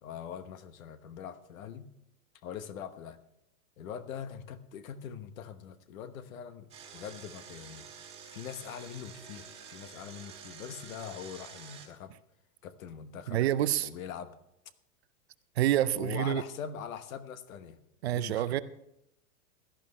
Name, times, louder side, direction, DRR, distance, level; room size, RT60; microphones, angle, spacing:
voice 1, 0.0-1.8 2.4-3.2 3.8-6.7 6.9-7.9 8.3-12.1 12.6-13.4 13.8-14.4 15.9-17.8 18.1-18.6, left 8 dB, 65° left, 12 dB, 1.2 m, -42 dB
Engine, 6.7-11.9, right 7 dB, 15° right, 1.7 m, -49 dB
voice 2, 13.3-13.9 15.6-16.4 18.0-18.6, right 12 dB, 45° right, 15 dB, 0.5 m, -27 dB
16.5 x 11.5 x 3.2 m, 0.82 s
supercardioid pair, 160°, 45 cm